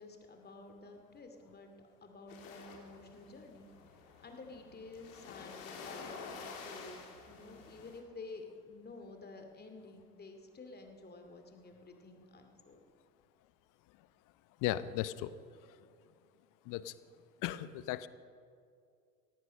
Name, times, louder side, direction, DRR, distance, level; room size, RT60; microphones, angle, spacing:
voice 1, 0.0-1.7 2.0-3.7 4.2-12.8, left 3 dB, 20° left, 5 dB, 2.4 m, -51 dB
sound 1, 2.3-8.0, left 5 dB, 65° left, 2.6 m, -50 dB
voice 2, 14.6-15.1 16.7-16.8 17.4-18.1, left 14 dB, 45° left, 16 dB, 0.8 m, -35 dB
17.0 x 15.5 x 5.4 m, 2.3 s
figure-of-eight pair, 70°, 44 cm